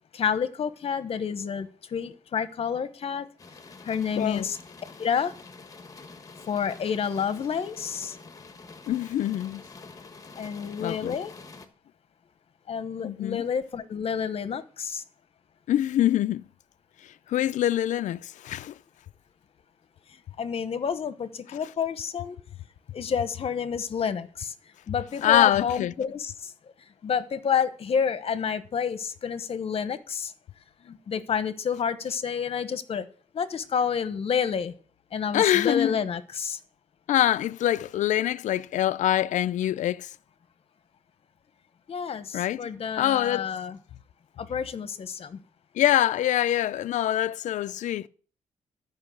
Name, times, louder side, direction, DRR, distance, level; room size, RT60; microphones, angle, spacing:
voice 1, 0.1-3.3 3.8-4.6 5.0-5.3 6.5-8.2 10.4-11.3 12.7-15.0 20.4-22.4 22.9-24.5 24.9-26.5 27.0-30.3 30.8-33.1 33.3-34.7 35.1-36.6 41.9-43.8 44.4-45.4, left 7 dB, 50° left, 1.1 m, -29 dB
sound 1, 3.4-11.7, left 4 dB, 25° left, 1.4 m, -47 dB
voice 2, 8.9-9.6 10.8-11.2 13.0-13.4 15.7-16.4 17.3-18.7 25.2-25.9 35.3-36.0 37.1-40.1 42.3-42.7 43.0-43.5 45.8-48.1, left 12 dB, 70° left, 0.5 m, -24 dB
12.5 x 5.6 x 7.8 m
cardioid pair, 135°, 13 cm